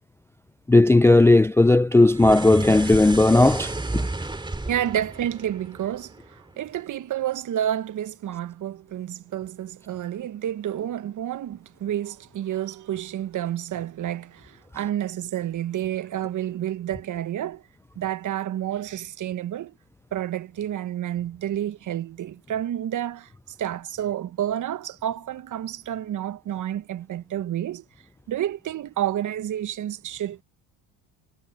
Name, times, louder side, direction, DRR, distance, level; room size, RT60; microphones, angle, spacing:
voice 1, 0.7-4.1, left 2 dB, 5° left, 0.4 m, -16 dB
sound 1, 2.1-6.5, right 2 dB, 10° right, 2.7 m, -32 dB
voice 2, 4.7-17.6 18.0-19.7 20.1-23.3 23.6-27.8 28.3-30.4, right 11 dB, 45° right, 1.1 m, -30 dB
supercardioid pair, 80°, 41 cm